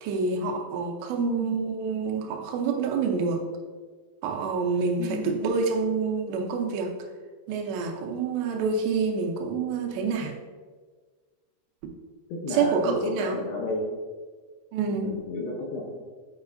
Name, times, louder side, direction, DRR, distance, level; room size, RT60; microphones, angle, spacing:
voice 1, 0.0-3.4 4.2-6.9 7.5-10.3 12.5-13.4 14.7-15.2, right 5 dB, 90° right, 3 dB, 3.0 m, -27 dB
voice 2, 1.2-1.5 5.0-5.3 12.3-13.9 14.9-16.0, left 2 dB, 75° left, -2 dB, 2.1 m, -32 dB
8.6 x 4.8 x 2.5 m, 1.5 s
omnidirectional pair, 4.9 m